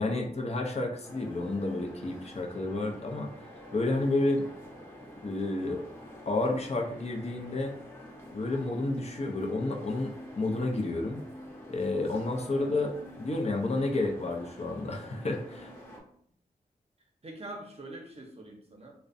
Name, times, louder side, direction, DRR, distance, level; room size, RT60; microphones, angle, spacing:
voice 1, 0.0-3.3 3.7-4.5 5.2-5.8 6.3-7.8 8.3-11.2 11.7-12.9 13.2-15.7, left 2 dB, 40° left, 2 dB, 0.5 m, -30 dB
sound 1, 1.0-16.0, equal, 15° left, 0.8 m, -47 dB
voice 2, 12.4-12.9 17.2-18.9, right 2 dB, 40° right, 1 dB, 0.6 m, -45 dB
2.4 x 2.1 x 2.5 m, 0.64 s
cardioid pair, 40°, 16 cm